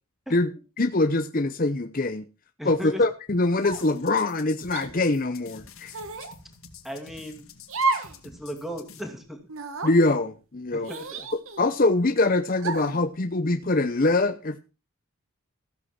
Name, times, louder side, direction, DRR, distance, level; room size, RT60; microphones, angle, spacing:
voice 1, 0.8-2.2 2.6-5.9 9.8-10.9 11.6-14.6, left 2 dB, 40° left, 7 dB, 0.8 m, -23 dB
voice 2, 2.6-3.0 6.8-7.5 8.2-9.4 10.7-11.3, equal, ahead, 5 dB, 2.4 m, -37 dB
sound 1, 3.6-4.0 4.7-4.9 5.9-6.3 7.7-8.2 8.5-8.6 9.5-9.9 10.8-11.8 12.6-13.0, right 3 dB, 65° right, 1.8 m, -31 dB
sound 2, 3.7-9.0, left 5 dB, 70° left, 2.4 m, -48 dB
15.5 x 8.1 x 5.9 m, 0.32 s
head